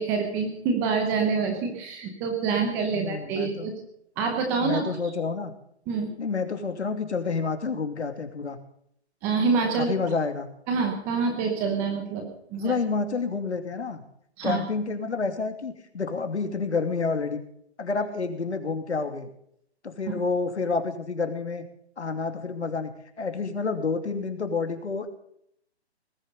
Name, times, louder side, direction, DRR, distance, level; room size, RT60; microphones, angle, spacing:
voice 1, 0.0-3.7 4.2-4.9 5.9-6.1 9.2-9.9 10.7-12.7 14.4-14.6, right 5 dB, 5° right, 4 dB, 0.8 m, -26 dB
voice 2, 2.9-3.7 4.6-5.5 6.2-8.6 9.7-10.5 12.6-14.0 14.4-17.4 17.8-19.3 19.8-21.6 22.0-22.9 23.2-25.1, left 4 dB, 80° left, 7 dB, 2.8 m, -29 dB
19.0 x 11.0 x 5.3 m, 0.69 s
hypercardioid pair, 165°, 33 cm